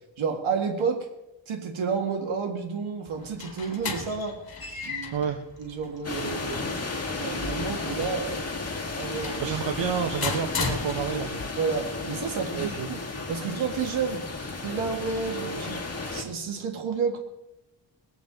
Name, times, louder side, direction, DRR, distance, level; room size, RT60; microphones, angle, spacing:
voice 1, 0.2-1.1 1.5-4.4 4.8-5.3 5.6-6.9 7.2-8.4 9.0-9.6 11.6-12.7 13.3-14.3 14.6-15.8 16.1-17.2, right 5 dB, 90° right, 2 dB, 1.9 m, -30 dB
sound 1, 3.1-11.5, left 4 dB, 50° left, 2.3 m, -36 dB
sound 2, 6.0-16.2, left 3 dB, 30° left, 2.6 m, -34 dB
voice 2, 9.4-11.4 12.5-12.9, right 7 dB, 70° right, 6 dB, 1.1 m, -29 dB
22.0 x 8.4 x 4.0 m, 0.92 s
cardioid pair, 75°, 46 cm